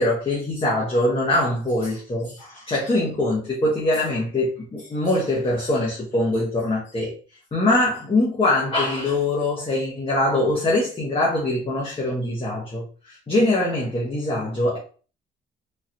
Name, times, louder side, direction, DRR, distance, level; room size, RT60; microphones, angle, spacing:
voice 1, 0.0-7.1 7.5-14.8, left 1 dB, 30° left, -4 dB, 1.2 m, -23 dB
3.8 x 2.9 x 2.6 m, 0.38 s
cardioid pair, 90°, 20 cm